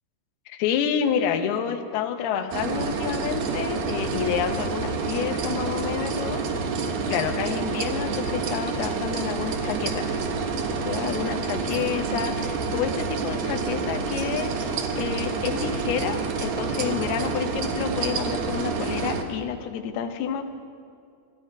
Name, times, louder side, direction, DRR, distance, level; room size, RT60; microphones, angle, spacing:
voice 1, 0.5-6.4 7.1-10.2 10.9-20.5, left 8 dB, 75° left, 7 dB, 2.7 m, -29 dB
sound 1, 2.5-19.2, right 4 dB, 85° right, 1.5 m, -28 dB
22.0 x 12.5 x 4.6 m, 2.4 s
omnidirectional pair, 4.8 m